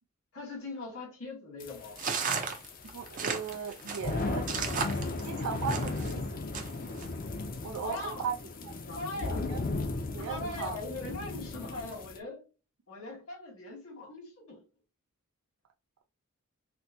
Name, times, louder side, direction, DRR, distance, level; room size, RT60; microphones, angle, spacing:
voice 1, 0.3-2.0 7.8-8.3 8.9-9.5 10.2-12.4 12.9-14.6, left 2 dB, 85° left, 1.9 m, -40 dB
sound 1, 1.6-12.2, left 3 dB, 40° left, 0.5 m, -36 dB
sound 2, 2.0-6.1 6.5-7.1, right 5 dB, 40° right, 0.6 m, -34 dB
voice 2, 2.9-4.6 5.2-6.4 7.6-8.3 8.6-8.7 9.4-9.6 10.1-10.7, right 6 dB, 80° right, 0.4 m, -37 dB
4.3 x 2.1 x 2.6 m
head